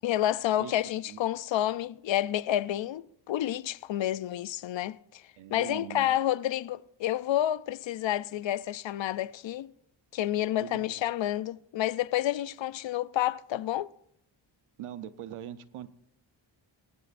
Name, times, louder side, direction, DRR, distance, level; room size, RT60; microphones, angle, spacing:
voice 1, 0.0-5.2 5.5-9.7 10.1-13.9, left 12 dB, 65° left, 0.6 m, -29 dB
voice 2, 5.4-6.2 10.6-11.0 14.8-15.9, right 10 dB, 80° right, 0.8 m, -42 dB
21.5 x 11.0 x 2.6 m
cardioid pair, 65°, 49 cm